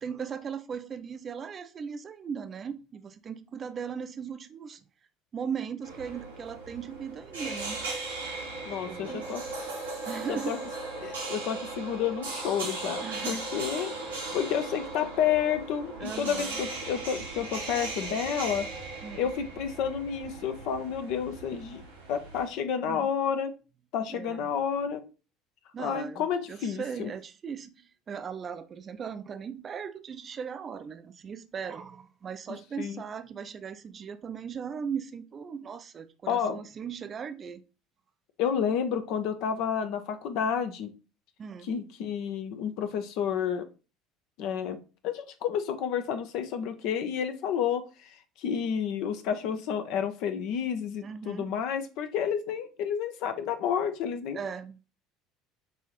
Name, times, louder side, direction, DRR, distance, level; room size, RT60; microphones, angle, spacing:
voice 1, 0.0-4.8 5.3-7.9 8.8-9.3 10.0-10.7 13.0-13.7 16.0-16.6 19.0-19.3 22.8-23.1 24.1-24.5 25.7-37.6 41.4-41.7 51.0-51.5 54.3-54.8, right 6 dB, 35° right, 0.4 m, -38 dB
sound 1, 5.8-22.5, right 3 dB, 85° right, 1.1 m, -38 dB
voice 2, 8.7-9.4 10.2-10.6 11.0-13.9 14.3-18.7 19.1-21.8 22.1-23.5 23.9-25.0 25.8-27.1 32.8-33.0 36.3-36.6 38.4-40.9 41.6-43.7 44.4-44.8 45.0-54.4, left 8 dB, 60° left, 0.5 m, -30 dB
5.4 x 2.7 x 2.9 m
figure-of-eight pair, 65°, 0 cm